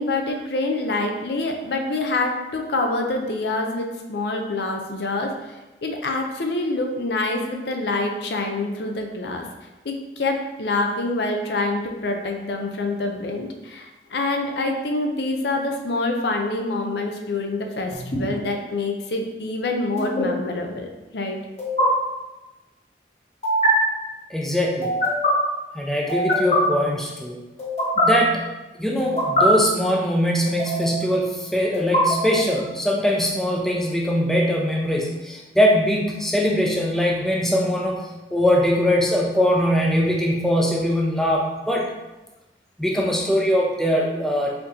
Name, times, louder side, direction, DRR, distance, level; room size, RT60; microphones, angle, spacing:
voice 1, 0.0-9.4 9.8-21.4, left 2 dB, 70° left, 3 dB, 0.6 m, -26 dB
sound 1, 17.9-18.2 20.0-20.2 21.6-21.9 23.4-23.7 24.8-25.3 26.1-26.6 27.6-28.0 29.0-29.4 30.4-31.0 31.7-32.6, equal, 35° left, 0.9 m, -23 dB
voice 2, 24.3-25.0 25.7-27.4 28.0-28.5 28.8-38.0 38.3-41.9 42.8-44.6, equal, ahead, -1 dB, 0.4 m, -21 dB
4.4 x 2.7 x 3.7 m, 1.1 s
head